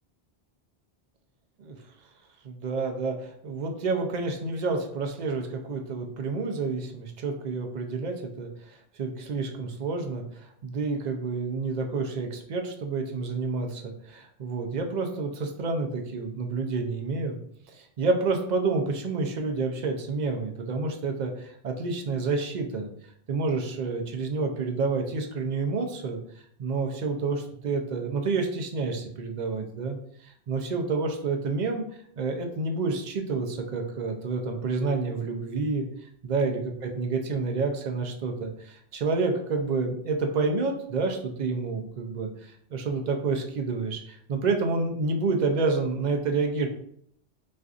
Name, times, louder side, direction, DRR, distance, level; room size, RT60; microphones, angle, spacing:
voice 1, 2.4-17.4 17.7-22.9 23.3-26.2 26.6-30.0 30.2-31.8 32.2-35.9 36.2-46.7, right 4 dB, 55° right, 4 dB, 0.5 m, -29 dB
4.2 x 2.5 x 2.4 m, 0.67 s
omnidirectional pair, 1.1 m